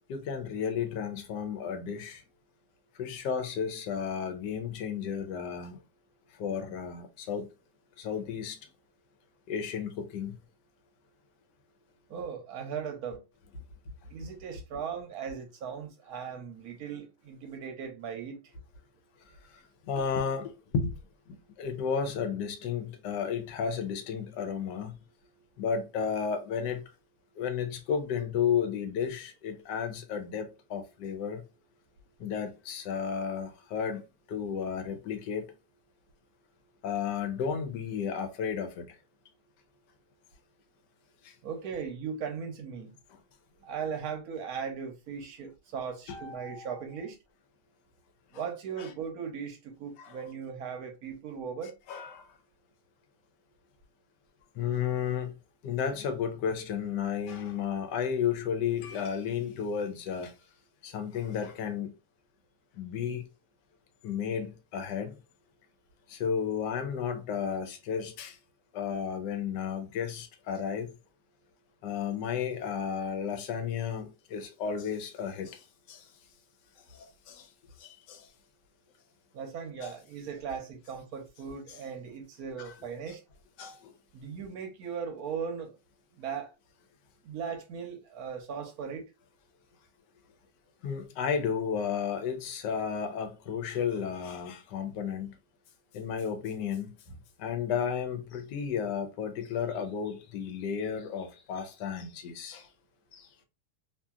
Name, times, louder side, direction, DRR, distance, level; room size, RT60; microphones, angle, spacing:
voice 1, 0.1-2.2 3.0-5.8 6.3-7.5 8.0-8.6 9.5-10.3 19.5-20.9 21.3-24.9 25.6-26.8 27.4-31.4 32.2-34.0 34.3-35.4 36.8-39.0 41.2-41.3 43.1-43.2 46.1-46.8 48.8-48.9 50.0-50.2 51.9-52.3 54.5-55.4 55.6-60.3 60.8-61.9 62.8-63.2 64.0-65.2 66.1-68.4 68.7-71.0 71.8-76.1 76.9-77.5 77.8-78.3 79.8-79.9 82.6-82.7 83.1-83.2 83.6-83.9 90.8-95.4 95.9-96.9 97.4-102.7 103.1-103.3, left 7 dB, 90° left, 1.3 m, -33 dB
voice 2, 12.1-13.2 14.1-18.4 41.4-42.9 43.6-47.2 48.3-51.7 79.3-83.2 84.1-85.7 86.2-86.5 87.2-89.0, right 6 dB, 70° right, 1.0 m, -38 dB
2.8 x 2.7 x 2.3 m
omnidirectional pair, 1.8 m